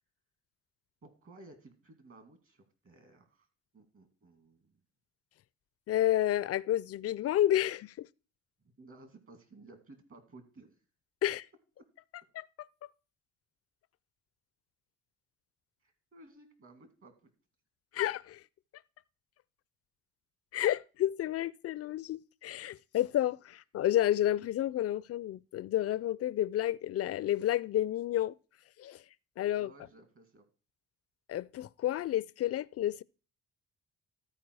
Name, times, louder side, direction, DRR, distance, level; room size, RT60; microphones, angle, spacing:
voice 1, 1.0-3.5 3.7-4.8 8.8-10.8 15.8-17.3 29.6-30.5, right 2 dB, 45° right, 2.5 m, -56 dB
voice 2, 5.9-8.1 11.2-11.4 12.3-12.4 17.9-18.4 20.5-28.3 28.8-29.0 29.4-29.7 31.3-33.0, left 12 dB, 50° left, 0.4 m, -30 dB
13.5 x 4.5 x 4.7 m
cardioid pair, 90°, 30 cm